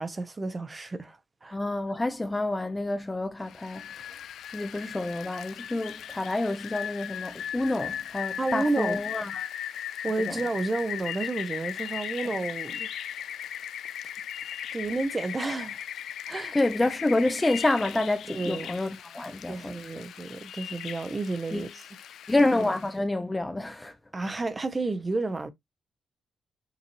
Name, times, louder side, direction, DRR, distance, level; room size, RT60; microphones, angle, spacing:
voice 1, 0.0-1.6 8.4-9.0 10.0-12.9 13.2-13.3 14.7-15.8 16.3-16.6 18.3-18.7 19.5-21.7 24.1-25.5, right 3 dB, 20° right, 0.7 m, -31 dB
voice 2, 1.5-3.9 4.5-9.5 10.2-10.4 12.2-12.3 16.5-20.0 21.5-21.7 22.3-24.0, left 2 dB, 15° left, 0.5 m, -28 dB
Rain, 3.5-22.9, left 10 dB, 80° left, 0.4 m, -38 dB
6.7 x 2.5 x 2.9 m
wide cardioid pair, 140°, 0 cm